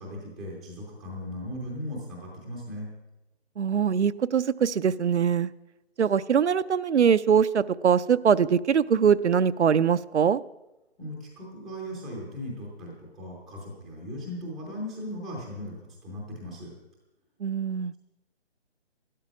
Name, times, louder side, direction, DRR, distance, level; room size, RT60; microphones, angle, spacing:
voice 1, 0.0-2.9 11.0-15.7 16.0-16.7, left 1 dB, ahead, -4 dB, 0.6 m, -37 dB
voice 2, 3.6-5.5 6.0-10.4 17.4-17.9, right 7 dB, 80° right, 14 dB, 0.6 m, -22 dB
12.0 x 12.0 x 6.1 m, 1.0 s
figure-of-eight pair, 150°, 34 cm